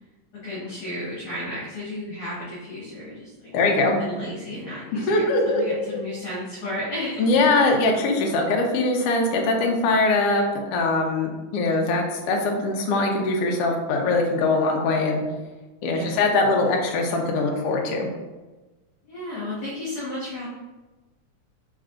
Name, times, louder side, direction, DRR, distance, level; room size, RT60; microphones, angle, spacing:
voice 1, 0.4-3.5 4.0-7.5 15.9-16.2 19.1-20.5, left 1 dB, 55° left, -10 dB, 2.2 m, -33 dB
voice 2, 3.5-4.0 4.9-5.6 7.2-10.4 10.7-15.2 15.8-18.1, left 2 dB, 75° left, 1 dB, 1.4 m, -22 dB
4.6 x 4.4 x 2.5 m, 1.2 s
omnidirectional pair, 3.4 m